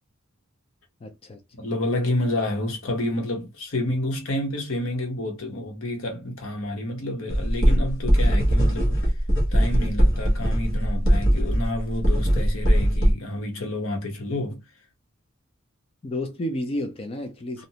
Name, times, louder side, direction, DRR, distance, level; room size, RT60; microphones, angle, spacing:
voice 1, 1.0-1.4 16.0-17.6, left 1 dB, 30° left, 0.4 m, -31 dB
voice 2, 1.6-9.0 9.5-14.6 17.6-17.7, left 1 dB, 85° left, 1.0 m, -29 dB
sound 1, 7.3-13.1, equal, 65° left, 1.0 m, -20 dB
2.6 x 2.1 x 2.7 m
head